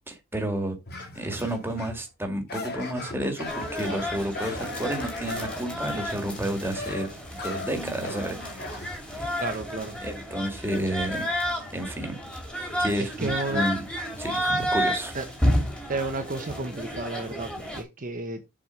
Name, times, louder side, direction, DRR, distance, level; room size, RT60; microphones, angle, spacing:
voice 1, 0.1-0.8 1.1-7.1 7.4-9.4 10.0-11.3 11.7-12.2 12.8-13.8 14.2-14.4 14.7-15.1, right 1 dB, 10° right, 2.0 m, -31 dB
sound 1, 0.9-2.1 2.5-9.0, left 2 dB, 50° left, 3.2 m, -38 dB
sound 2, 3.5-17.8, equal, 5° left, 2.4 m, -31 dB
voice 2, 9.4-9.9 13.0-13.7 15.1-15.2 15.9-18.4, right 2 dB, 40° right, 1.1 m, -32 dB
7.4 x 4.9 x 5.2 m
head